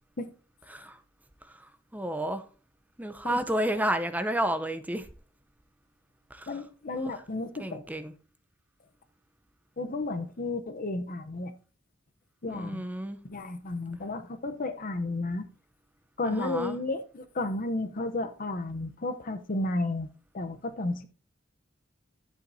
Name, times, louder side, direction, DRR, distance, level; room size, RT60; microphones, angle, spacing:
voice 1, 1.9-2.4 3.0-5.1 6.3-6.6 6.9-7.2 7.6-8.1 12.5-13.2 16.2-16.8, right 1 dB, 10° right, 0.7 m, -31 dB
voice 2, 6.5-7.8 9.8-11.5 12.4-12.8 13.3-15.5 16.2-20.1 20.3-21.1, left 2 dB, 45° left, 0.8 m, -32 dB
11.5 x 8.8 x 2.7 m
head